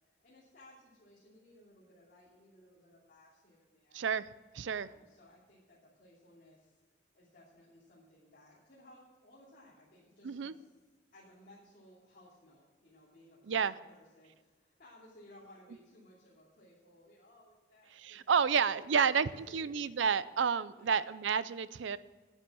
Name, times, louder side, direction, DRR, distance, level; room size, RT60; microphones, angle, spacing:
voice 1, 0.2-4.0 4.7-6.7 7.1-10.7 11.1-20.1 20.7-21.2, left 1 dB, 50° left, -7 dB, 2.9 m, -60 dB
voice 2, 3.9-4.3 4.5-4.9 10.2-10.5 13.5-13.7 17.9-22.0, right 6 dB, 80° right, 17 dB, 0.5 m, -30 dB
9.9 x 9.7 x 6.2 m, 1.3 s
head